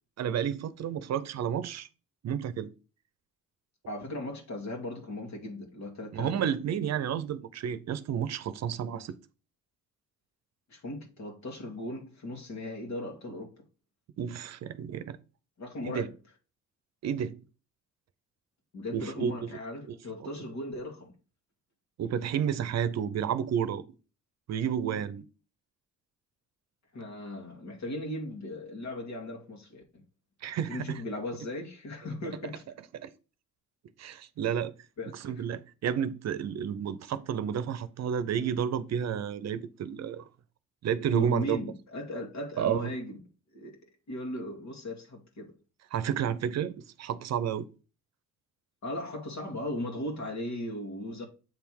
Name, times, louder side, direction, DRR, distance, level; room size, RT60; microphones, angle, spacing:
voice 1, 0.2-1.9 2.2-2.7 6.1-9.1 14.2-15.2 15.8-16.1 17.0-17.4 18.9-19.3 19.9-20.0 22.0-23.9 24.5-25.2 30.4-31.0 32.9-33.1 34.0-34.7 35.1-40.2 40.8-41.6 42.6-42.9 45.9-46.7 47.0-47.7, right 8 dB, 60° right, 0.7 m, -31 dB
voice 2, 3.9-6.3 10.7-13.6 15.6-16.1 18.7-21.1 26.9-30.0 30.7-32.7 35.0-35.4 41.1-43.2 43.5-43.8 44.1-45.5 48.8-51.3, left 1 dB, 65° left, 2.3 m, -37 dB
7.9 x 3.5 x 4.6 m
cardioid pair, 90°, 30 cm